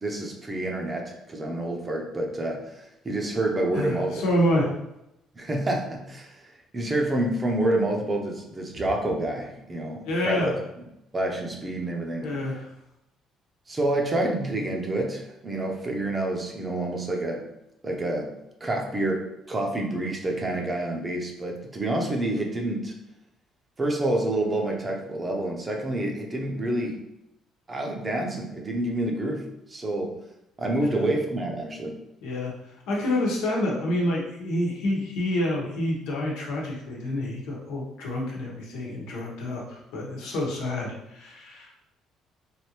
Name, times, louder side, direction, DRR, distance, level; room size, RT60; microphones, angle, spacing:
voice 1, 0.0-4.2 4.6-4.7 5.3-10.5 10.8-10.9 11.1-12.4 13.7-17.4 17.8-18.3 18.6-22.9 23.8-27.0 27.7-30.2 30.6-32.0, right 1 dB, 25° right, 1 dB, 0.6 m, -28 dB
voice 2, 3.7-4.7 10.1-10.5 12.2-12.7 30.8-31.0 32.2-32.5 32.9-41.7, left 1 dB, 90° left, -3 dB, 1.0 m, -28 dB
3.3 x 2.6 x 2.9 m, 0.86 s
cardioid pair, 110°, 0 cm